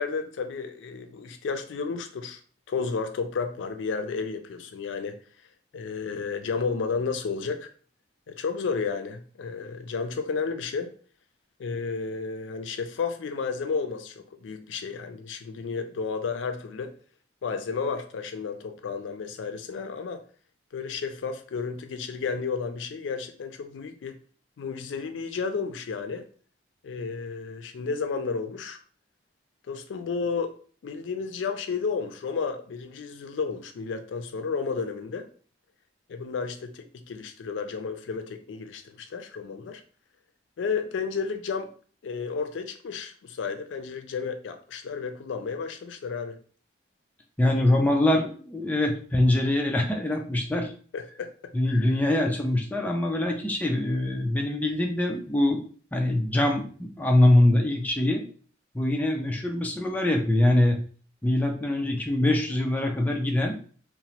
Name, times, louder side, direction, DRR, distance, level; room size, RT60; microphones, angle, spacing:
voice 1, 0.0-2.4 2.7-5.2 5.7-7.7 8.3-10.9 11.6-16.9 17.4-20.2 20.7-24.2 24.6-26.3 26.8-28.8 29.7-30.6 30.8-35.3 36.1-39.8 40.6-41.7 42.0-46.4 50.9-51.9, left 5 dB, 85° left, 0.4 m, -32 dB
voice 2, 47.4-50.7 51.5-55.6 55.9-58.2 58.7-60.8 61.2-63.6, left 1 dB, 10° left, 0.3 m, -23 dB
2.8 x 2.0 x 2.8 m
head